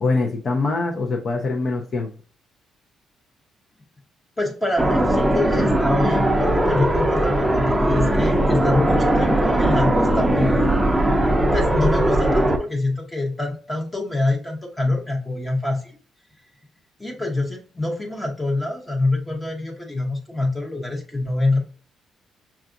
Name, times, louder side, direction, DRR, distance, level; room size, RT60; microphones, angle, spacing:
voice 1, 0.0-2.1, left 3 dB, 50° left, 1 dB, 0.7 m, -23 dB
voice 2, 4.4-10.6 11.5-16.0 17.0-21.6, left 2 dB, 15° left, 0 dB, 0.8 m, -25 dB
sound 1, 4.8-12.6, right 1 dB, 10° right, 0.6 m, -19 dB
5.7 x 2.4 x 2.5 m, 0.41 s
cardioid pair, 90°, 0 cm